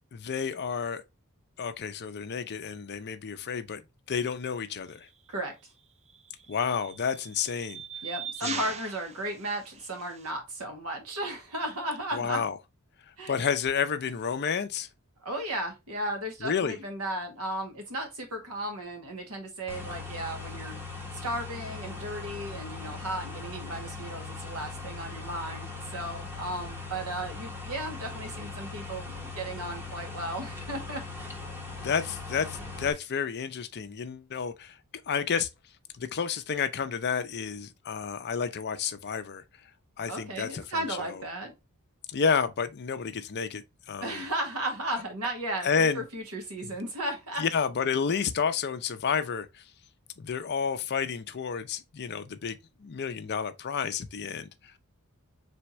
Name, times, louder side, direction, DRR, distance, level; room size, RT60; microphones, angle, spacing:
voice 1, 0.1-1.0 1.6-3.8 4.1-5.1 6.5-7.8 8.4-8.7 12.1-12.5 13.3-14.9 16.4-16.8 31.8-34.8 35.1-35.5 36.0-39.4 40.0-40.6 42.1-44.2 45.6-46.0 47.4-49.6 50.2-54.5, left 6 dB, 50° left, 0.5 m, -30 dB
sound 1, 4.9-5.1 6.1-10.3, right 6 dB, 30° right, 0.6 m, -41 dB
voice 2, 8.0-12.4 13.2-13.3 15.2-31.3 40.1-41.5 44.0-47.4, right 1 dB, 75° right, 1.7 m, -35 dB
sound 2, 19.7-32.9, left 3 dB, 10° right, 1.0 m, -40 dB
4.3 x 3.4 x 3.0 m
head